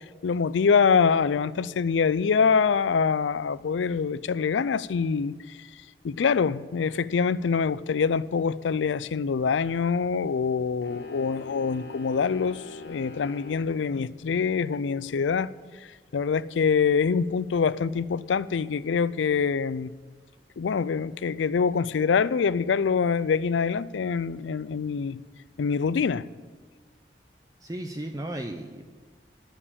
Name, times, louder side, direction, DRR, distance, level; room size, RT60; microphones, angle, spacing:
voice 1, 0.2-5.7 6.0-15.5 16.1-19.9 20.6-25.2 25.6-26.3, left 5 dB, 85° left, 0.4 m, -25 dB
sound 1, 10.8-13.6, left 2 dB, 70° left, 1.6 m, -42 dB
voice 2, 27.6-28.9, right 1 dB, 20° right, 0.6 m, -35 dB
11.0 x 7.2 x 8.6 m
head